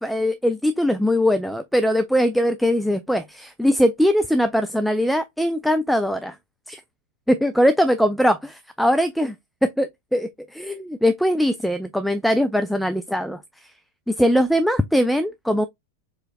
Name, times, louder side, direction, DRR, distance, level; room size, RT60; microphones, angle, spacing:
voice 1, 0.0-6.4 6.7-6.8 7.3-9.4 9.6-13.7 14.1-15.7, equal, ahead, 0.3 m, -21 dB
4.7 x 3.0 x 2.5 m
figure-of-eight pair, 90°, 0 cm